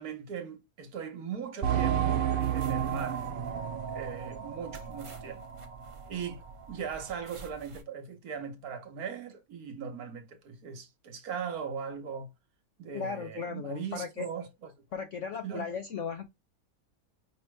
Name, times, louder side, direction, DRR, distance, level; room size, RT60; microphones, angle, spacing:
voice 1, 0.0-3.3 3.9-5.4 6.1-12.3 12.8-14.7 15.4-15.7, right 7 dB, 60° right, 1.4 m, -39 dB
sound 1, 1.6-5.9 6.2-6.3 6.9-7.0, right 9 dB, 90° right, 0.4 m, -31 dB
sound 2, 2.4-7.8, right 3 dB, 25° right, 0.7 m, -50 dB
voice 2, 12.9-14.3 14.9-16.3, left 6 dB, 70° left, 0.7 m, -36 dB
5.4 x 2.8 x 3.2 m
omnidirectional pair, 1.8 m